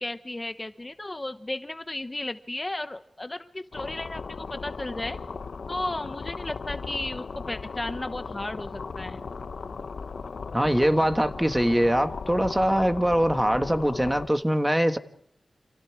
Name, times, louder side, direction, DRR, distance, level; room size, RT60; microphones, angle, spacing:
voice 1, 0.0-5.2 5.7-9.2, left 2 dB, 25° left, 0.9 m, -34 dB
sound 1, 3.7-14.3, left 4 dB, 80° left, 1.0 m, -37 dB
voice 2, 10.5-15.0, equal, 10° right, 1.5 m, -23 dB
29.0 x 27.5 x 4.8 m
wide cardioid pair, 85°, 0 cm